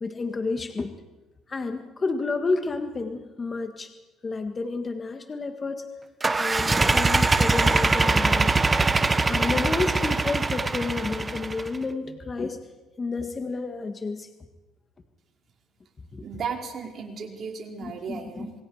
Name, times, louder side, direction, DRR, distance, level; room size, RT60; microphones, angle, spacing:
voice 1, 0.0-0.9 1.5-3.9 4.2-5.9 6.3-8.6 9.3-12.6 13.0-14.3 16.1-16.2 17.8-18.5, left 3 dB, 30° left, 6 dB, 1.9 m, -30 dB
sound 1, 6.2-11.8, right 3 dB, 20° right, 1.3 m, -22 dB
voice 2, 16.2-18.5, right 6 dB, 50° right, 1 dB, 5.0 m, -35 dB
27.0 x 21.5 x 5.1 m, 1.1 s
supercardioid pair, 85°, 0 cm